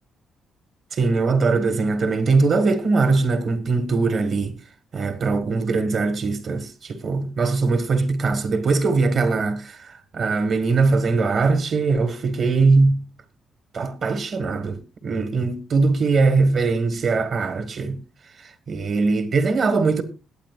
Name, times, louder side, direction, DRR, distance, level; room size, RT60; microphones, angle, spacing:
voice 1, 0.9-4.6 4.9-13.1 13.7-18.0 18.4-20.0, right 4 dB, 55° right, 1.6 m, -21 dB
21.0 x 8.9 x 2.4 m
cardioid pair, 90°, 0 cm